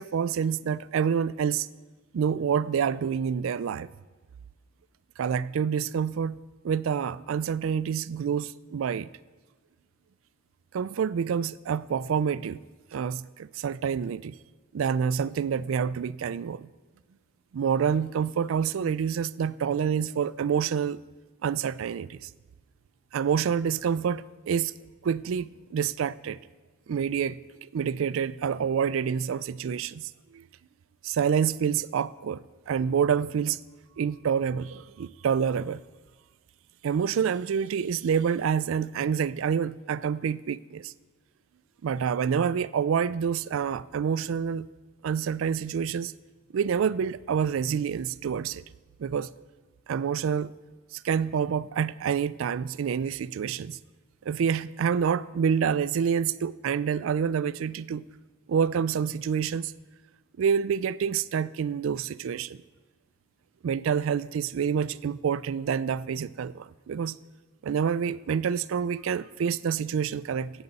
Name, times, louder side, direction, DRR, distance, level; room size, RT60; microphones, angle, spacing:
voice 1, 0.0-1.7 2.1-3.9 5.2-6.4 6.6-9.1 10.7-12.6 12.9-14.3 14.7-16.7 17.5-21.0 21.4-22.3 23.1-24.7 25.0-26.4 26.9-27.4 27.7-30.4 31.0-33.6 34.0-35.8 36.8-40.9 41.8-44.7 45.0-46.1 46.5-48.6 49.0-49.3 49.9-50.5 50.9-53.8 54.3-58.0 58.5-59.7 60.4-62.6 63.6-67.2 67.6-70.5, right 7 dB, 70° right, 18 dB, 0.3 m, -27 dB
15.5 x 7.8 x 4.1 m, 1.3 s
head